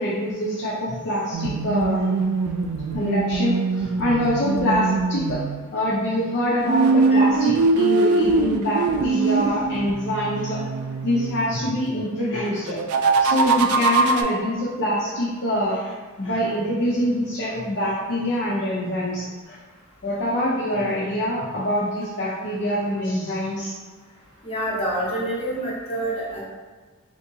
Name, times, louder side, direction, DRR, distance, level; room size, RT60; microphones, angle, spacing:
voice 1, 0.0-2.3 2.9-5.4 5.7-10.6 11.0-12.8 13.2-15.9 16.2-19.6 20.0-23.7, equal, 55° left, -7 dB, 0.6 m, -25 dB
sound 1, 1.3-5.6 6.6-11.5 12.7-14.2, right 3 dB, 85° right, 0.3 m, -22 dB
voice 2, 24.4-26.4, right 1 dB, 25° left, -7 dB, 1.0 m, -27 dB
3.5 x 2.8 x 2.6 m, 1.4 s
head